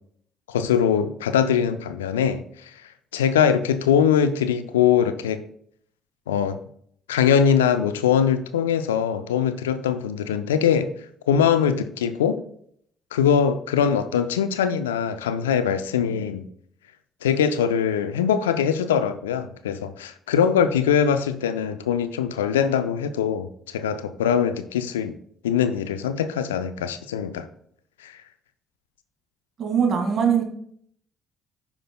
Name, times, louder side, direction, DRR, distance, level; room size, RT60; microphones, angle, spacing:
voice 1, 0.5-2.7 3.1-5.4 6.3-6.6 7.1-10.9 11.3-12.4 13.1-16.5 17.2-25.2 25.4-27.5 28.0-28.1, left 8 dB, 85° left, 0.5 m, -22 dB
voice 2, 29.6-30.4, right 7 dB, 55° right, 2.0 m, -21 dB
15.0 x 5.9 x 2.3 m
hypercardioid pair, 50°, 0 cm